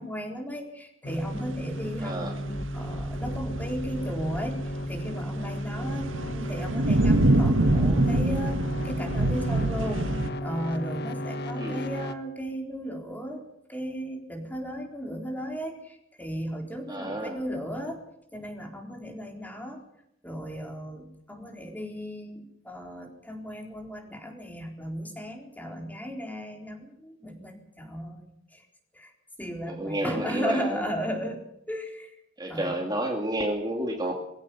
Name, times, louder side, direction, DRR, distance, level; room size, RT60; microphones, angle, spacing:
voice 1, 0.0-4.6 4.9-13.4 13.7-18.0 18.3-19.8 20.2-28.3 28.5-28.6 28.9-29.1 29.4-32.2 32.5-32.9, equal, 10° left, 2 dB, 4.1 m, -35 dB
sound 1, 1.0-12.1, equal, 55° left, 1.3 m, -34 dB
sound 2, 1.2-10.3, right 1 dB, 85° right, 1.8 m, -26 dB
voice 2, 2.0-2.3 11.6-11.8 16.9-17.4 29.7-30.8 32.4-34.1, right 1 dB, 20° right, 2 dB, 2.3 m, -30 dB
22.0 x 16.0 x 7.2 m, 0.76 s
head